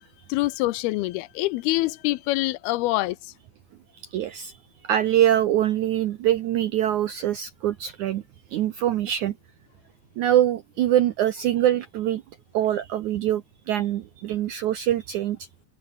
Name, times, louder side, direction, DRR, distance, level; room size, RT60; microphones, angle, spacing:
voice 1, 0.3-3.2, left 19 dB, 85° left, 2.5 m, -25 dB
voice 2, 4.1-4.6 4.8-8.2 8.5-9.3 10.2-12.2 12.5-15.4, right 12 dB, 75° right, 1.8 m, -24 dB
omnidirectional pair, 4.6 m